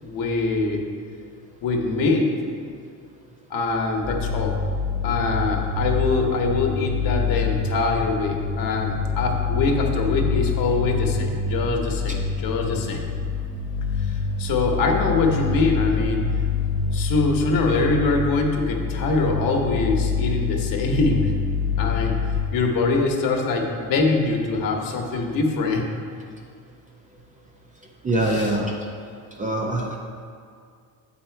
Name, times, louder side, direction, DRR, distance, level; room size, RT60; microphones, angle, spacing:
voice 1, 0.0-0.8 1.6-2.3 3.5-4.6 5.0-13.0 14.0-16.2 16.9-21.3 21.8-22.2 22.5-25.8 28.2-28.5, left 3 dB, 55° left, 2 dB, 1.0 m, -23 dB
sound 1, 4.0-22.4, left 5 dB, 15° left, 0.9 m, -26 dB
voice 2, 28.0-28.7 29.4-30.0, right 1 dB, 20° right, -1 dB, 0.4 m, -23 dB
8.0 x 4.3 x 4.4 m, 2.2 s
cardioid pair, 155°, 41 cm